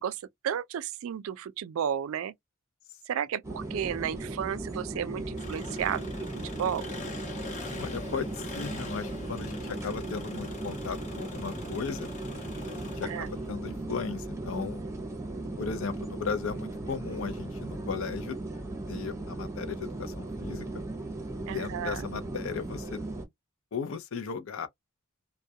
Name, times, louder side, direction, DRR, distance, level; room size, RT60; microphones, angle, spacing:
voice 1, 0.0-2.3 3.1-6.3 6.5-6.9 13.0-13.3 21.5-22.1, right 9 dB, 70° right, 0.3 m, -33 dB
sound 1, 3.4-23.2, right 2 dB, 15° right, 0.6 m, -37 dB
Engine, 5.4-13.5, left 3 dB, 35° left, 0.8 m, -43 dB
voice 2, 7.8-12.1 12.6-14.8 15.6-18.4 18.9-20.7 21.4-23.0 23.7-24.7, left 5 dB, 65° left, 0.5 m, -36 dB
2.3 x 2.1 x 2.6 m
head